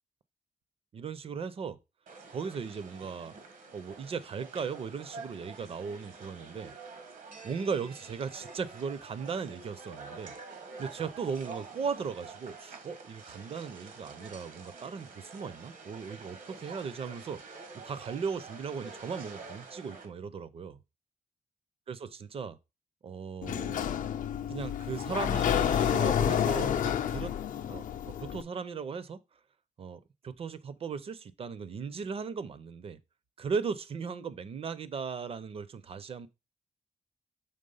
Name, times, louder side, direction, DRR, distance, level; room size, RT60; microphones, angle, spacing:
voice 1, 0.9-1.8 2.3-3.3 3.7-6.7 7.4-10.3 10.8-17.4 17.8-20.8 21.9-22.6 23.0-23.8 24.5-27.3 27.7-29.2 29.8-33.0 33.4-36.3, right 5 dB, 45° right, 0.6 m, -37 dB
sound 1, 2.1-20.1, right 4 dB, 75° right, 1.4 m, -47 dB
Sliding door, 23.4-28.4, left 9 dB, 75° left, 0.5 m, -29 dB
6.7 x 3.5 x 5.4 m
wide cardioid pair, 170°, 14 cm